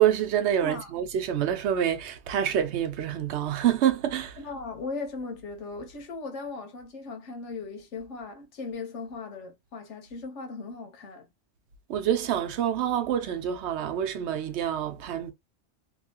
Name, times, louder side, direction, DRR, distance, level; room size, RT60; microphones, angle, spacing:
voice 1, 0.0-4.4 11.9-15.3, right 10 dB, 75° right, 0.9 m, -26 dB
voice 2, 4.4-11.3, left 4 dB, 85° left, 1.1 m, -38 dB
2.8 x 2.4 x 2.8 m
omnidirectional pair, 1.2 m